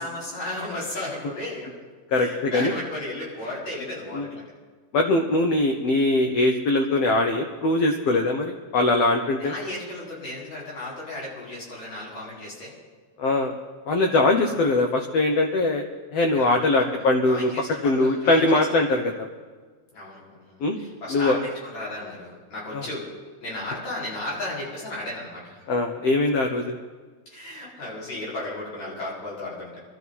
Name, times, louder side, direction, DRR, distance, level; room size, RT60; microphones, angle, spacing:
voice 1, 0.0-1.8 2.1-4.4 9.3-12.7 16.3-16.9 17.3-18.6 19.9-23.1 23.4-25.6 27.3-29.8, left 1 dB, 50° left, -7 dB, 6.4 m, -34 dB
voice 2, 2.1-2.7 4.1-4.3 4.9-9.5 13.2-13.5 13.9-15.8 16.1-17.5 17.8-19.3 20.6-20.8 21.1-21.4 22.7-22.8 25.7-26.8, left 2 dB, 85° left, 4 dB, 1.4 m, -22 dB
23.5 x 13.0 x 4.2 m, 1.4 s
omnidirectional pair, 4.2 m